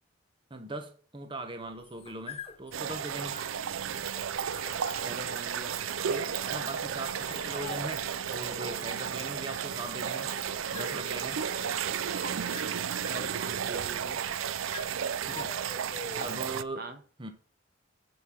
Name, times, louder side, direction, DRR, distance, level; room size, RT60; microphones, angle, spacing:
voice 1, 0.5-3.4 6.5-10.3 10.7-11.4 15.2-15.6 16.2-16.9 17.2-17.3, right 2 dB, 25° right, 1.2 m, -40 dB
sound 1, 1.6-16.5, left 4 dB, 30° left, 0.8 m, -48 dB
sound 2, 2.7-16.6, right 8 dB, 85° right, 0.5 m, -33 dB
sound 3, 4.3-12.7, left 4 dB, 70° left, 1.3 m, -50 dB
voice 2, 5.0-5.7 6.1-6.3 13.1-14.2 16.1-16.3 16.8-17.0, right 2 dB, 50° right, 1.1 m, -41 dB
7.7 x 7.6 x 6.3 m
head